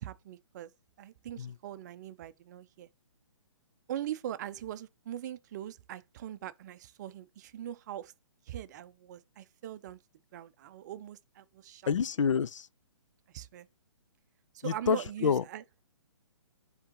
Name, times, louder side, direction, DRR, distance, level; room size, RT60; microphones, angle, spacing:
voice 1, 0.0-0.7 1.0-2.9 3.9-8.1 8.5-10.0 10.3-11.9 13.3-13.7 14.6-15.6, right 11 dB, 35° right, 0.5 m, -41 dB
voice 2, 11.9-12.7 14.6-15.4, left 6 dB, 80° left, 0.4 m, -28 dB
10.0 x 3.6 x 2.9 m
hypercardioid pair, 140°, 16 cm